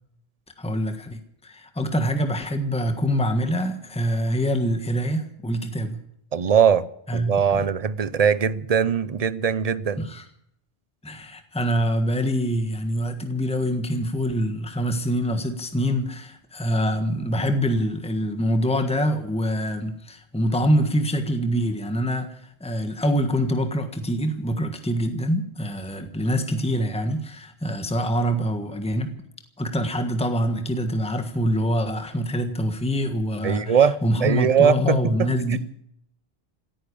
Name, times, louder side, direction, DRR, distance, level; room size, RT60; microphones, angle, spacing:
voice 1, 0.6-6.0 7.1-7.6 10.0-10.2 11.0-29.1 29.6-35.6, equal, 5° left, 1.4 m, -25 dB
voice 2, 6.3-6.9 7.1-10.0 33.4-35.6, right 7 dB, 40° right, 0.7 m, -21 dB
16.5 x 10.0 x 8.6 m
omnidirectional pair, 1.2 m